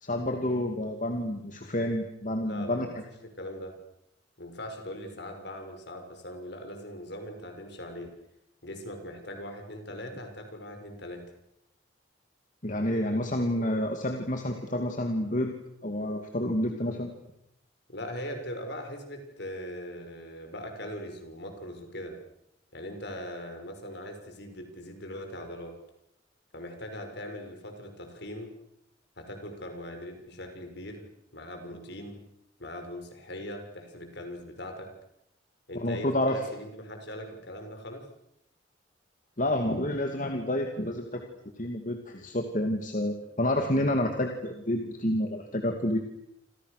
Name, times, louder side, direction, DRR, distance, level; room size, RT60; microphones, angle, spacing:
voice 1, 0.0-2.9 12.6-15.5 15.8-17.1 35.7-36.5 39.4-41.2 41.6-46.0, left 1 dB, 40° left, 4 dB, 2.6 m, -29 dB
voice 2, 2.4-2.9 3.2-3.8 4.4-8.1 8.6-11.2 17.9-22.2 22.7-25.7 26.5-28.5 29.2-31.1 31.3-32.2 32.6-34.9 35.7-38.1, left 1 dB, 60° left, 5 dB, 6.3 m, -40 dB
28.5 x 28.0 x 6.7 m, 0.79 s
head